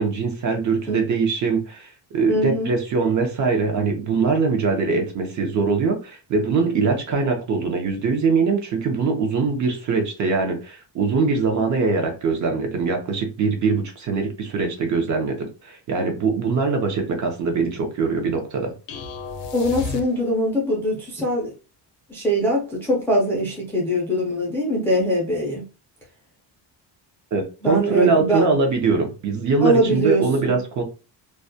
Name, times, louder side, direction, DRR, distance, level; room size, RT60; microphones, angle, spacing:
voice 1, 0.0-18.7 27.3-30.8, right 4 dB, 40° right, 0.6 m, -22 dB
voice 2, 2.3-2.7 19.5-21.5 22.1-25.6 27.6-28.4 29.6-30.6, equal, 5° left, 0.3 m, -22 dB
sound 1, 18.9-20.6, left 4 dB, 75° left, 0.6 m, -33 dB
2.3 x 2.1 x 2.6 m
cardioid pair, 175°, 45 cm